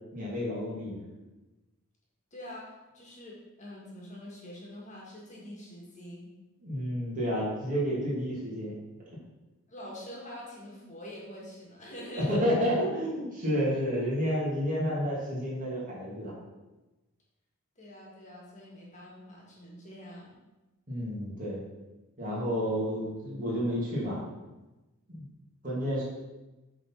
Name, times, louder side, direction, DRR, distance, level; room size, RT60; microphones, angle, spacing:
voice 1, 0.1-1.0 6.6-8.7 12.3-16.3 20.9-21.6 22.2-24.2 25.1-25.2 25.6-26.0, equal, 35° right, -6 dB, 2.7 m, -30 dB
voice 2, 2.3-6.3 9.7-12.4 17.8-20.3, left 1 dB, 35° left, -3 dB, 1.9 m, -45 dB
7.8 x 4.1 x 5.8 m, 1.1 s
head